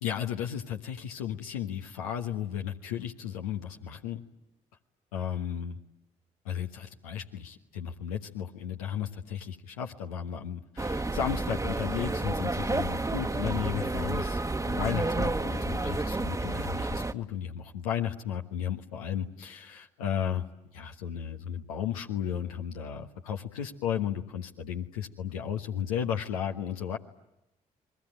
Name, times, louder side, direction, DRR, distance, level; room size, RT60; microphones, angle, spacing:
voice 1, 0.0-4.2 5.1-5.8 6.4-20.5 20.7-27.0, left 9 dB, 80° left, 3 dB, 1.3 m, -34 dB
sound 1, 10.8-17.1, right 2 dB, 20° right, 1.4 m, -30 dB
30.0 x 21.5 x 9.0 m, 0.87 s
figure-of-eight pair, 40°, 18 cm